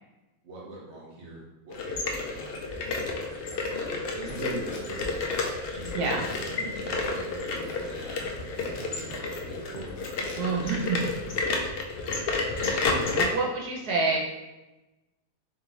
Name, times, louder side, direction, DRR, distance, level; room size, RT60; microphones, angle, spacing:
voice 1, 0.4-5.3 5.7-9.9 10.4-11.5, right 2 dB, 50° right, -4 dB, 1.4 m, -42 dB
sound 1, 1.7-13.2, left 3 dB, 60° left, 0.6 m, -31 dB
sound 2, 4.4-11.6, left 3 dB, 85° left, 1.3 m, -49 dB
voice 2, 10.3-11.0 12.5-14.2, right 4 dB, 85° right, -1 dB, 1.2 m, -28 dB
3.8 x 3.0 x 3.8 m, 1.0 s
omnidirectional pair, 1.6 m